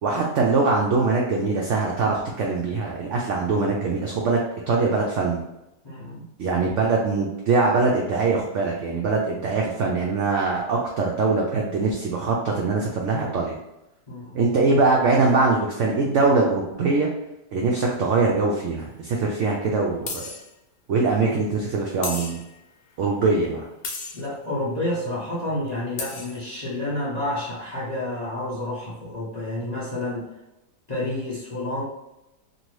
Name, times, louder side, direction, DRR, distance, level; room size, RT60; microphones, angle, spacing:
voice 1, 0.0-4.4 4.7-5.4 6.4-13.6 14.3-17.1 17.5-20.2 20.9-22.4 23.0-23.6, right 3 dB, 80° right, -1 dB, 0.6 m, -22 dB
voice 2, 5.8-6.3 14.1-14.4 24.1-30.3 30.9-31.8, left 1 dB, 50° left, -7 dB, 0.5 m, -29 dB
sound 1, 18.8-18.9 20.1-20.5 22.0-22.6 23.8-24.3 25.7-25.8 26.0-26.4, left 3 dB, 75° left, 1.2 m, -34 dB
2.7 x 2.6 x 3.1 m, 0.93 s
omnidirectional pair, 1.8 m